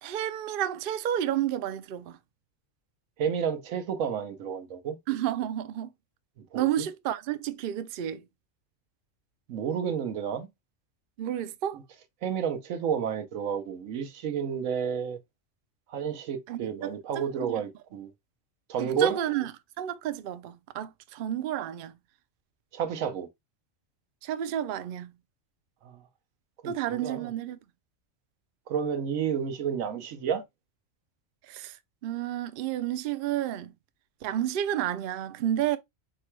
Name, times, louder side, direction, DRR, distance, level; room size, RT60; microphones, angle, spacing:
voice 1, 0.0-2.2 5.1-5.9 6.5-8.2 11.2-11.8 16.5-16.9 17.4-17.6 18.8-19.5 19.8-21.9 24.2-25.1 26.6-27.6 31.5-31.8 32.0-33.7 34.2-35.8, right 11 dB, 60° right, 0.6 m, -31 dB
voice 2, 3.2-5.0 6.5-6.9 9.5-10.5 12.2-15.2 15.9-18.1 18.7-19.2 22.7-23.3 25.8-26.0 26.6-27.3 28.7-30.4, right 7 dB, 90° right, 1.2 m, -30 dB
4.7 x 2.1 x 4.5 m
omnidirectional pair, 1.3 m